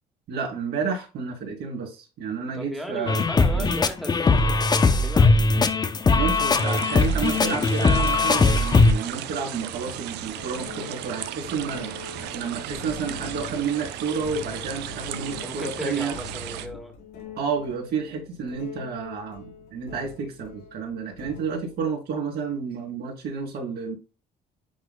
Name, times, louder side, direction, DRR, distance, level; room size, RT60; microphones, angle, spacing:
voice 1, 0.3-3.2 3.5-3.6 6.1-16.1 17.4-23.9, right 5 dB, 70° right, -1 dB, 3.8 m, -30 dB
voice 2, 2.5-5.5 15.4-16.9, equal, ahead, 3 dB, 1.7 m, -36 dB
sound 1, 3.1-8.9, left 3 dB, 25° left, 0.7 m, -20 dB
sound 2, 6.5-16.7, right 12 dB, 85° right, 0.7 m, -36 dB
sound 3, 9.5-9.7 10.2-21.8, left 5 dB, 80° left, 3.3 m, -43 dB
10.0 x 4.1 x 2.3 m, 0.30 s
cardioid pair, 110°, 17 cm